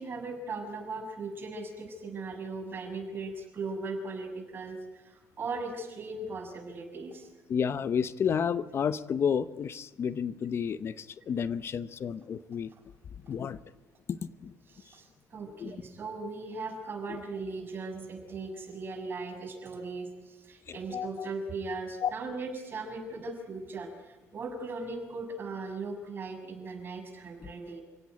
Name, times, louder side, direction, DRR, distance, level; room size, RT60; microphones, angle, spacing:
voice 1, 0.0-7.3 14.7-27.8, right 3 dB, 35° right, 4 dB, 6.5 m, -38 dB
voice 2, 7.5-12.7 13.3-13.6 14.1-14.2 14.4-14.5 15.6-15.8 17.1-17.2 20.7-21.3 22.0-22.1, left 7 dB, 40° left, 14 dB, 0.7 m, -31 dB
29.5 x 17.0 x 9.3 m, 1.1 s
cardioid pair, 145°, 6 cm